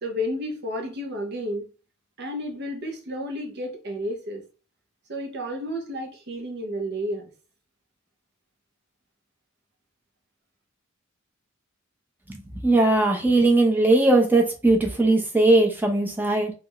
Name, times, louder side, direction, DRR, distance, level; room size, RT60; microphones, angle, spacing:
voice 1, 0.0-1.7 2.2-4.4 5.1-7.3, equal, 55° right, 0.7 m, -31 dB
voice 2, 12.6-16.5, right 2 dB, 10° right, 0.6 m, -19 dB
3.3 x 2.4 x 3.0 m
head